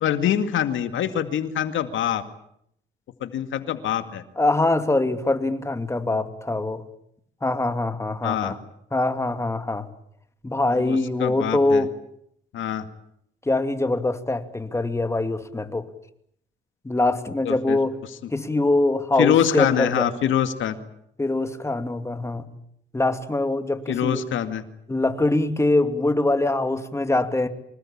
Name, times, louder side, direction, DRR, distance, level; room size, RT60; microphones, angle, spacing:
voice 1, 0.0-2.2 3.2-4.2 8.2-8.6 10.7-11.8 12.5-12.9 17.5-17.8 19.2-20.8 23.9-24.6, left 10 dB, 75° left, 9 dB, 2.2 m, -24 dB
voice 2, 4.4-6.8 7.4-8.6 8.9-9.9 10.4-11.9 13.5-15.9 16.8-17.9 18.3-20.1 21.2-22.4 22.9-24.2 24.9-27.5, left 2 dB, 15° left, 8 dB, 2.5 m, -23 dB
25.5 x 20.5 x 8.7 m, 0.72 s
cardioid pair, 90°, 20 cm